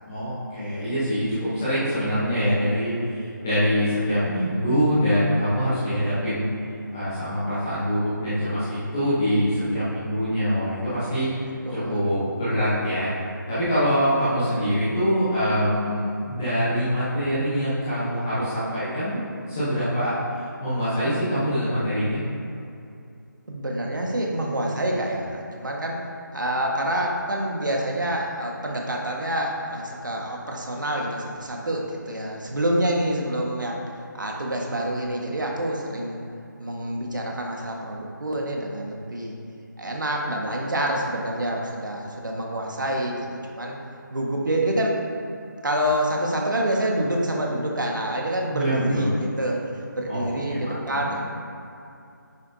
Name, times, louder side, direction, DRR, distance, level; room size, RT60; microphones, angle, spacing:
voice 1, 0.1-6.4 6.9-11.3 11.7-13.1 13.5-19.2 19.5-20.1 20.6-22.2 48.5-49.1 50.1-50.3 50.6-51.2, equal, 10° left, -15 dB, 0.9 m, -24 dB
voice 2, 11.6-12.0 23.5-26.0 26.3-33.8 34.1-36.2 36.6-39.3 39.8-43.2 43.5-43.8 44.1-45.0 45.6-51.2, right 1 dB, 70° right, -1 dB, 1.6 m, -27 dB
10.0 x 7.0 x 2.8 m, 2.6 s
figure-of-eight pair, 180°, 11 cm